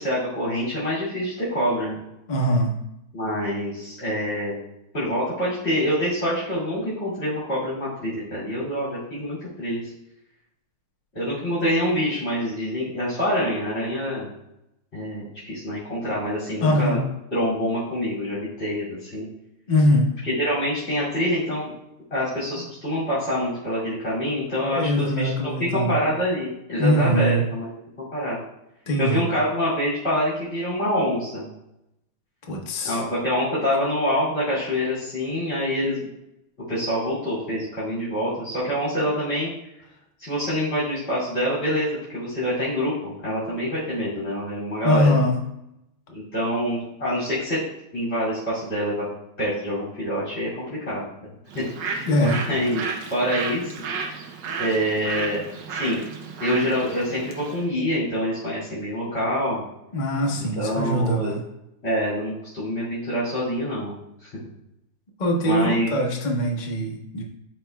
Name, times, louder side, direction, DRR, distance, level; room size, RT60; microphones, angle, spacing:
voice 1, 0.0-2.0 3.1-4.6 4.9-9.9 11.1-14.3 14.9-17.0 17.3-19.3 20.2-21.7 22.1-28.4 29.0-31.5 32.8-36.1 36.7-39.5 40.2-45.2 46.1-47.6 47.9-49.1 49.4-51.1 51.5-52.8 53.1-53.7 54.6-55.4 55.7-56.0 56.4-59.6 60.6-61.3 61.8-63.9 64.2-64.3 65.4-65.9, equal, 30° left, -10 dB, 2.7 m, -26 dB
voice 2, 2.3-2.8 16.6-17.0 19.7-20.1 24.6-26.0 26.8-27.4 28.9-29.2 32.5-33.0 44.8-45.4 52.1-52.4 59.9-61.4 65.2-67.2, equal, 55° left, 0 dB, 0.5 m, -22 dB
Bird, 51.5-57.6, right 5 dB, 65° right, 1.3 m, -33 dB
12.5 x 4.3 x 2.3 m, 0.86 s
omnidirectional pair, 2.4 m